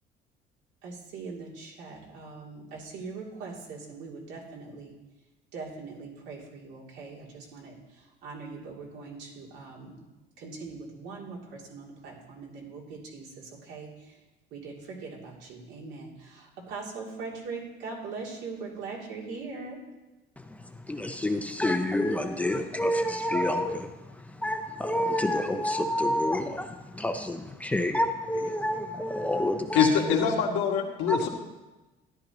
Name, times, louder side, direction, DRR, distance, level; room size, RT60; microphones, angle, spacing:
voice 1, 0.8-4.9 5.5-10.0 10.4-14.2 14.5-19.8, right 4 dB, 75° right, -3 dB, 2.9 m, -41 dB
voice 2, 20.9-23.9 24.4-29.9 31.1-31.3, left 1 dB, 5° left, 6 dB, 0.5 m, -28 dB
voice 3, 29.7-31.3, left 7 dB, 90° left, 0 dB, 1.8 m, -24 dB
13.5 x 11.0 x 3.0 m, 1.1 s
cardioid pair, 170°, 19 cm